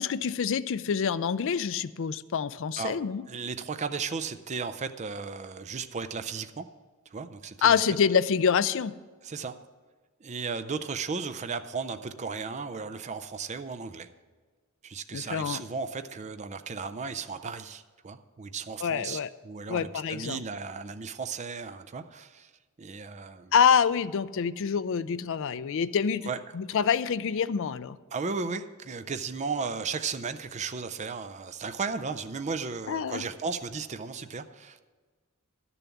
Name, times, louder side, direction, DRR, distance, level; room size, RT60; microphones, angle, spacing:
voice 1, 0.0-3.2 7.6-8.9 15.1-15.6 18.8-19.3 19.7-20.4 23.5-26.3 26.5-28.0 32.9-33.2, left 7 dB, 60° left, 14 dB, 0.4 m, -26 dB
voice 2, 3.3-6.7 7.1-7.8 9.2-9.6 10.2-14.1 14.8-22.5 22.8-23.5 26.3-26.4 28.1-34.8, right 5 dB, 30° right, 10 dB, 0.5 m, -35 dB
11.5 x 7.0 x 7.1 m, 1.4 s
head